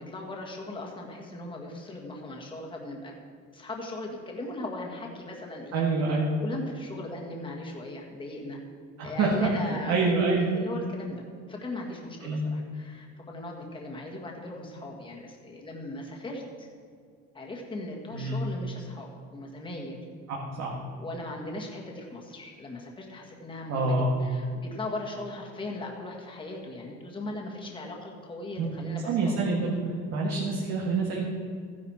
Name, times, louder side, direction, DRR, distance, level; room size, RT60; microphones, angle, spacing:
voice 1, 0.0-3.1 3.5-5.8 6.1-8.6 9.0-11.2 11.5-16.7 17.3-20.0 21.0-29.3, left 2 dB, 15° left, -1 dB, 1.8 m, -38 dB
voice 2, 5.7-6.3 9.0-9.5 9.9-10.5 12.2-12.4 18.1-18.4 20.3-20.7 23.7-24.1 28.6-28.7 29.1-29.8 30.1-31.2, right 3 dB, 60° right, -2 dB, 1.9 m, -26 dB
15.0 x 10.5 x 4.4 m, 2.3 s
cardioid pair, 170°, 30 cm